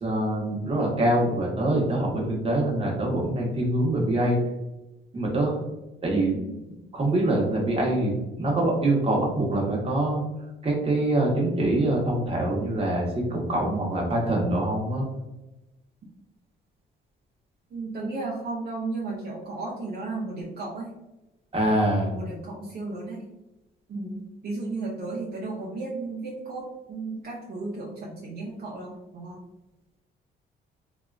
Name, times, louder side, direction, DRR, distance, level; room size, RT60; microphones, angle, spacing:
voice 1, 0.0-4.4 5.1-5.6 6.0-6.3 6.9-10.2 10.6-15.1 21.5-22.1, right 1 dB, 30° right, -2 dB, 1.0 m, -24 dB
voice 2, 17.7-20.9 22.1-23.2 23.9-29.4, right 3 dB, 50° right, -4 dB, 0.6 m, -34 dB
2.8 x 2.4 x 2.3 m, 0.99 s
cardioid pair, 90°, 20 cm